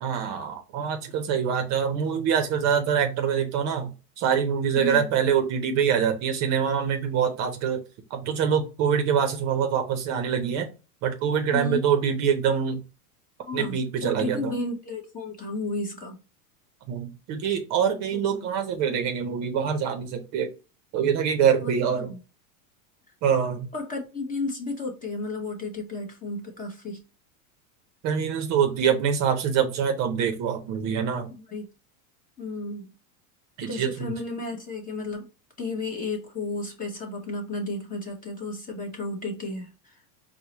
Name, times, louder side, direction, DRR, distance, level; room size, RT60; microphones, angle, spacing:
voice 1, 0.0-7.8 8.1-10.7 11.0-12.8 13.5-14.5 16.9-20.5 20.9-22.1 23.2-23.7 28.0-31.3 33.6-34.1, right 7 dB, 40° right, 0.6 m, -25 dB
voice 2, 4.8-5.1 11.5-11.8 13.5-16.2 18.1-18.5 21.6-22.2 23.7-27.0 31.3-31.6 32.4-32.8 33.6-35.3 35.6-40.0, left 2 dB, 20° left, 0.8 m, -33 dB
4.5 x 2.1 x 2.8 m
supercardioid pair, 135°, 43 cm